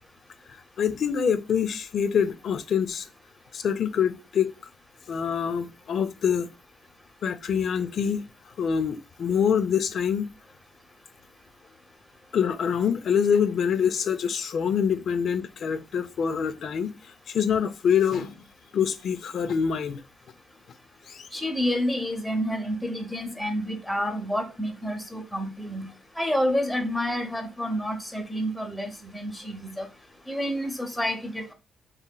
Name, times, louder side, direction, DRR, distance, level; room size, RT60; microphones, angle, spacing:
voice 1, 0.8-3.1 3.5-4.5 5.1-6.5 7.2-8.2 8.6-10.3 12.3-16.9 17.3-18.3 18.7-20.0 21.1-21.3, left 7 dB, 60° left, 0.3 m, -25 dB
voice 2, 21.3-25.9 26.2-29.9 30.3-31.5, equal, 5° left, 0.7 m, -29 dB
2.9 x 2.7 x 2.2 m
cardioid pair, 90°, 0 cm